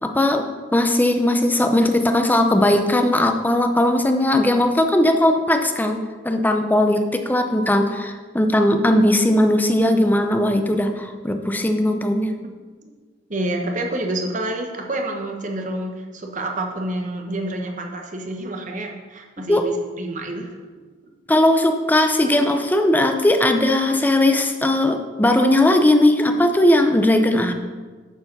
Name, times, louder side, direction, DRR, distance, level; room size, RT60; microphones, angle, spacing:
voice 1, 0.0-12.3 19.5-19.6 21.3-27.5, left 1 dB, 10° left, 6 dB, 0.5 m, -18 dB
voice 2, 13.3-20.5, right 1 dB, 45° right, 2 dB, 1.1 m, -28 dB
9.9 x 4.7 x 5.3 m, 1.4 s
head